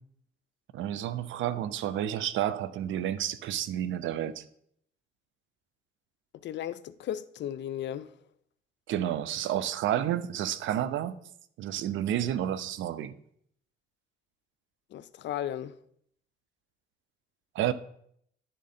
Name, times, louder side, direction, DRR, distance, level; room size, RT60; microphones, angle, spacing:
voice 1, 0.7-4.4 8.9-11.2 11.6-13.1 17.5-17.7, right 11 dB, 75° right, 0.5 m, -30 dB
voice 2, 6.4-8.1 14.9-15.7, left 11 dB, 65° left, 0.4 m, -35 dB
10.5 x 3.7 x 4.1 m
cardioid pair, 90°, 20 cm